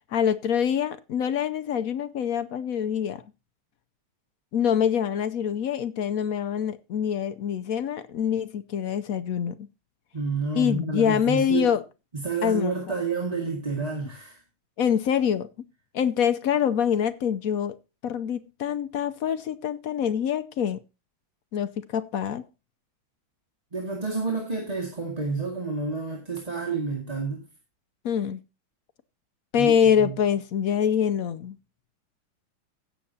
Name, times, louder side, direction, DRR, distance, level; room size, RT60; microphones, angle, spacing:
voice 1, 0.1-3.2 4.5-9.7 10.5-11.8 12.4-13.0 14.8-15.5 15.9-17.8 18.0-20.8 21.5-22.4 28.0-28.4 29.5-31.6, left 8 dB, 70° left, 0.8 m, -25 dB
voice 2, 10.1-11.7 12.1-14.4 23.7-27.5 29.6-30.2, right 4 dB, 20° right, 2.0 m, -29 dB
16.5 x 7.6 x 2.8 m
omnidirectional pair, 2.3 m